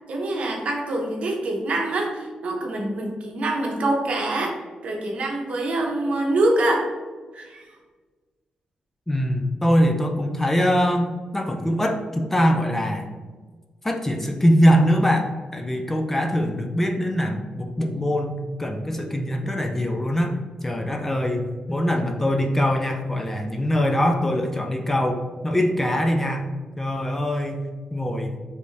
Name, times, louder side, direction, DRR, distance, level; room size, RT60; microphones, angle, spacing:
voice 1, 0.1-4.6 4.8-6.9 7.3-7.8, right 2 dB, 55° right, 0 dB, 0.9 m, -25 dB
voice 2, 9.1-13.1 13.8-26.4 26.8-27.6 27.9-28.4, equal, 10° left, 3 dB, 0.3 m, -23 dB
4.8 x 3.3 x 2.7 m, 1.4 s
wide cardioid pair, 130°, 2 cm